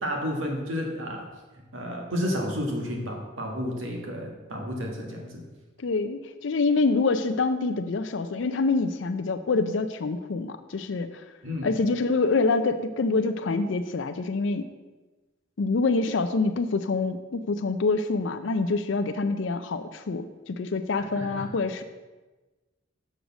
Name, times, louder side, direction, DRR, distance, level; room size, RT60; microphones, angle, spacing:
voice 1, 0.0-1.2 1.7-5.4 11.4-11.7 21.1-21.4, equal, 85° right, 1 dB, 1.7 m, -31 dB
voice 2, 5.8-11.1 11.6-14.7 15.6-21.8, left 3 dB, 65° left, 8 dB, 0.5 m, -26 dB
6.6 x 6.4 x 6.0 m, 1.2 s
head